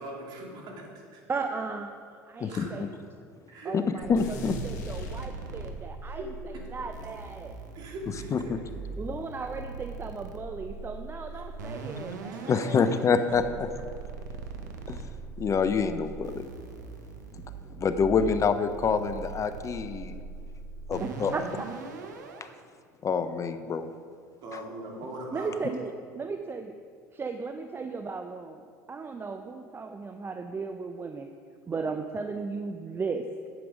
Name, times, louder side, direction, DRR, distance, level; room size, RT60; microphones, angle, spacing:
voice 1, 0.0-1.2 2.5-2.7 3.5-3.8 6.1-6.6 7.7-8.6 11.3-11.4 12.3-12.5 24.4-25.6, right 1 dB, 55° right, -1 dB, 2.6 m, -40 dB
voice 2, 1.3-2.8 3.6-7.6 9.0-12.8 21.0-21.7 25.3-26.7 27.1-31.3 31.7-33.3, right 4 dB, 25° right, 6 dB, 0.5 m, -36 dB
sound 1, 4.0-22.6, right 3 dB, 85° right, 0.9 m, -41 dB
voice 3, 4.1-4.5 8.3-8.4 12.5-13.7 14.9-15.0 15.4-16.4 17.8-20.2 20.9-21.3 23.0-23.9, left 5 dB, 35° left, 10 dB, 0.6 m, -26 dB
sound 2, 4.2-5.9, equal, 80° left, 1.1 m, -39 dB
9.0 x 7.7 x 5.1 m, 2.2 s
hypercardioid pair, 75°, 9 cm